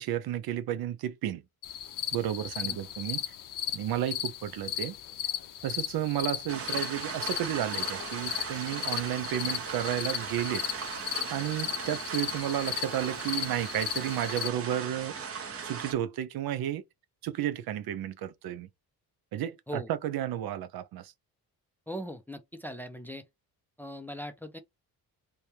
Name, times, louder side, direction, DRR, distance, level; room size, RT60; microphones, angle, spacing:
voice 1, 0.0-1.4 2.1-3.2 3.7-5.0 5.6-10.6 11.3-15.1 15.6-16.8 17.2-18.7 19.3-21.1, right 11 dB, 70° right, 0.6 m, -32 dB
sound 1, 1.6-14.5, left 11 dB, 60° left, 0.7 m, -36 dB
sound 2, 6.5-15.9, right 6 dB, 35° right, 0.8 m, -38 dB
voice 2, 21.9-23.2 23.8-24.6, equal, 5° left, 0.4 m, -39 dB
3.4 x 2.2 x 4.3 m
cardioid pair, 125°, 38 cm